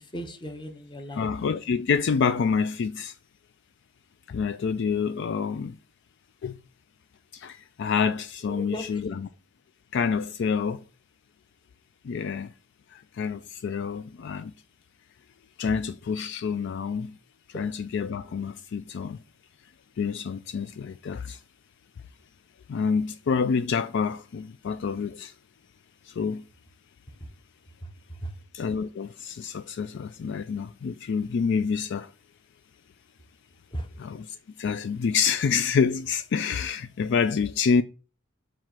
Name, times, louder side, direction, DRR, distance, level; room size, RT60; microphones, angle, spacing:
voice 1, 0.0-1.3 8.4-9.1 17.5-17.7 27.2-27.3 27.8-28.3 33.7-33.9, right 1 dB, 20° left, 0.8 m, -37 dB
voice 2, 1.2-3.1 4.3-5.8 6.4-6.6 7.3-9.0 9.9-10.8 12.0-12.5 12.9-14.5 15.6-17.1 17.6-19.2 20.0-21.4 22.7-25.3 26.0-26.4 28.5-32.1 34.0-34.2 34.6-37.8, left 6 dB, 60° left, 0.3 m, -27 dB
7.5 x 2.5 x 5.6 m
head